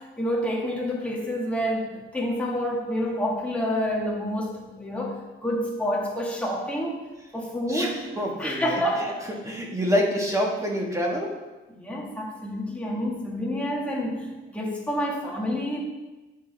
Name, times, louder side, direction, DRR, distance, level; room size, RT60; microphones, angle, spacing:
voice 1, 0.0-7.0 7.3-8.1 8.4-9.3 11.7-15.8, equal, 5° left, -3 dB, 1.6 m, -28 dB
voice 2, 7.7-8.8 9.4-11.3, equal, 15° right, -1 dB, 1.5 m, -26 dB
9.1 x 6.3 x 3.4 m, 1.1 s
cardioid pair, 135°, 21 cm